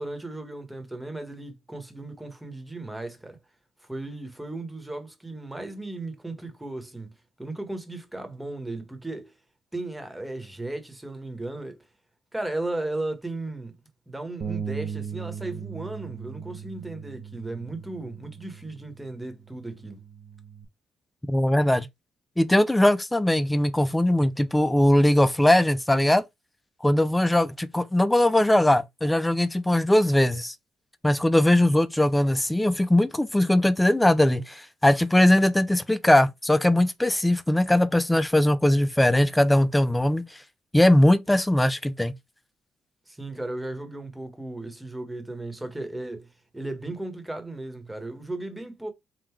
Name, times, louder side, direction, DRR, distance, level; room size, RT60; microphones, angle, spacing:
voice 1, 0.0-3.4 3.8-9.3 9.7-11.9 12.3-13.7 14.1-20.0 43.1-48.9, right 2 dB, 10° right, 1.3 m, -35 dB
Bass guitar, 14.4-20.7, right 7 dB, 50° right, 0.8 m, -38 dB
voice 2, 21.3-21.9 22.4-26.2 26.8-30.5 31.0-40.4 40.7-42.1, left 1 dB, 10° left, 0.5 m, -20 dB
3.8 x 2.3 x 4.5 m
cardioid pair, 90°, 0 cm